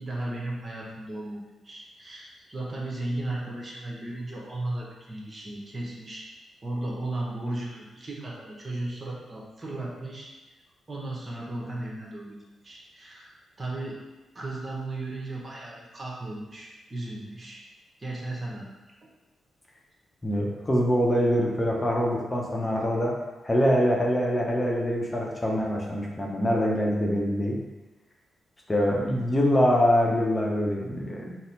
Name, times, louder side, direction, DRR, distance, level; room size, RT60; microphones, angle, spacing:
voice 1, 0.0-6.3 6.6-10.3 10.9-14.0 14.3-17.6 18.0-18.7, right 2 dB, 35° right, -3 dB, 1.0 m, -35 dB
voice 2, 20.2-23.1 23.4-27.6 28.7-31.4, equal, 25° left, -2 dB, 0.8 m, -24 dB
4.1 x 2.1 x 3.9 m, 1.1 s
hypercardioid pair, 45°, 0 cm